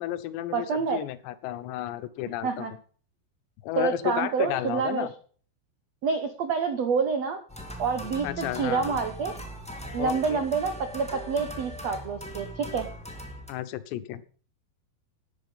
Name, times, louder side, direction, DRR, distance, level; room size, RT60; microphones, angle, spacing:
voice 1, 0.0-2.7 3.6-5.1 8.2-9.0 10.0-10.4 13.5-14.2, left 13 dB, 85° left, 13 dB, 3.1 m, -32 dB
voice 2, 0.5-1.0 2.4-2.7 3.8-5.1 6.0-7.4 7.8-9.3 9.9-12.9, right 5 dB, 85° right, 8 dB, 1.4 m, -27 dB
sound 1, 7.5-13.5, equal, 5° left, 0.6 m, -40 dB
12.5 x 10.0 x 5.6 m, 0.43 s
omnidirectional pair, 4.9 m